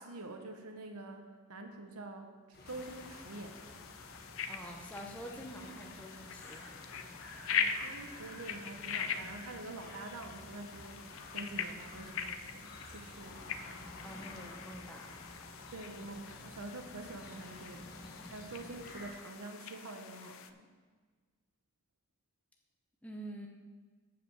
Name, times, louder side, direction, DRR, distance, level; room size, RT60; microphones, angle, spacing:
voice 1, 0.0-3.8 7.5-13.8 15.7-20.7, right 2 dB, 85° right, 5 dB, 1.0 m, -47 dB
sound 1, 2.5-19.1, left 1 dB, 45° left, 1.5 m, -51 dB
sound 2, 2.6-20.5, left 7 dB, 65° left, 0.5 m, -42 dB
voice 2, 4.5-6.9 14.0-15.3 23.0-23.5, right 1 dB, 5° left, 0 dB, 0.8 m, -47 dB
8.4 x 5.0 x 7.3 m, 1.5 s
head